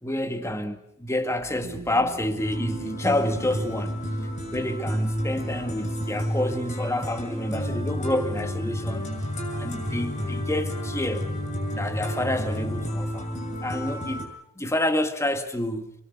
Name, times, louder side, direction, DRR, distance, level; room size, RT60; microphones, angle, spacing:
voice 1, 0.0-3.9 4.5-9.1 9.5-11.3 11.8-13.3 13.6-14.3 14.6-15.9, left 1 dB, 15° left, 2.0 m, -28 dB
sound 1, 1.3-6.3, right 2 dB, 70° right, 2.3 m, -45 dB
sound 2, 2.3-14.2, equal, 35° left, 7.0 m, -30 dB
29.0 x 22.5 x 6.6 m
head